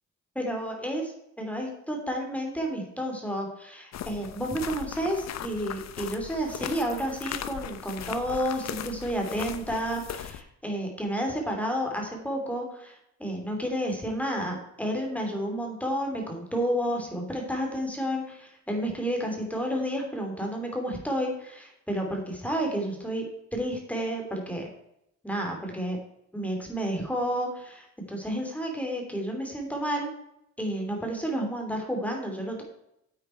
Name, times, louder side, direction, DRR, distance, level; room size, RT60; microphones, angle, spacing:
voice 1, 0.3-1.1 1.4-24.7 25.2-26.0 26.3-30.1 30.6-32.6, equal, 5° left, 1 dB, 3.1 m, -31 dB
sound 1, 3.9-10.4, left 10 dB, 60° left, 0.8 m, -38 dB
9.3 x 7.9 x 4.5 m, 0.78 s
cardioid pair, 90°, 30 cm